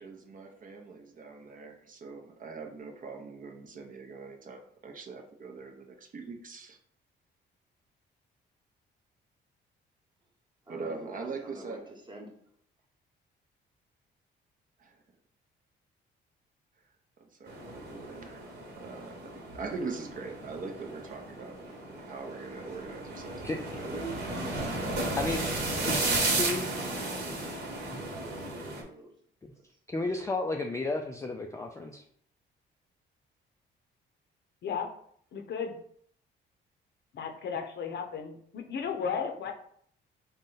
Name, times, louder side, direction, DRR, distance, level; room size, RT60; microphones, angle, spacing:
voice 1, 0.0-6.8 10.7-11.9 14.8-15.0 17.2-18.5 18.8-19.2 19.5-24.0, right 4 dB, 45° right, 3 dB, 0.6 m, -42 dB
voice 2, 10.7-12.3 22.6-23.1 23.8-25.4 25.7-29.1 29.7-29.8 30.1-30.2, right 2 dB, 25° right, 0 dB, 1.0 m, -47 dB
sound 1, 17.5-28.8, right 2 dB, 60° right, 1.1 m, -34 dB
voice 3, 25.2-25.5 25.8-26.0 26.3-26.7 27.9-28.0 29.9-32.0, left 2 dB, 15° left, 2 dB, 0.3 m, -32 dB
voice 4, 35.3-35.8 37.1-39.5, left 6 dB, 60° left, 4 dB, 0.6 m, -34 dB
3.8 x 2.1 x 3.8 m, 0.63 s
cardioid pair, 90°, 20 cm